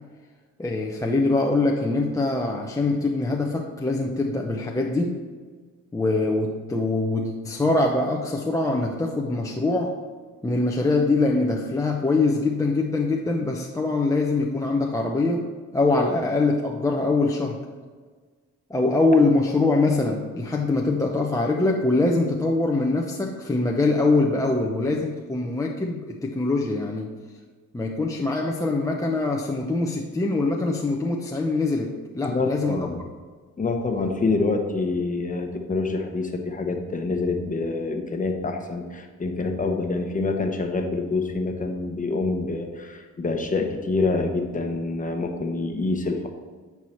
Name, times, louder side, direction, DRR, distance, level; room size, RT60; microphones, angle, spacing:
voice 1, 0.6-5.2 5.9-10.0 10.4-17.6 18.7-27.1 27.7-32.8, left 2 dB, 10° left, 0 dB, 0.6 m, -23 dB
voice 2, 32.2-33.0 33.6-46.3, left 3 dB, 25° left, 4 dB, 1.0 m, -26 dB
8.6 x 4.7 x 4.4 m, 1.5 s
cardioid pair, 90°, 30 cm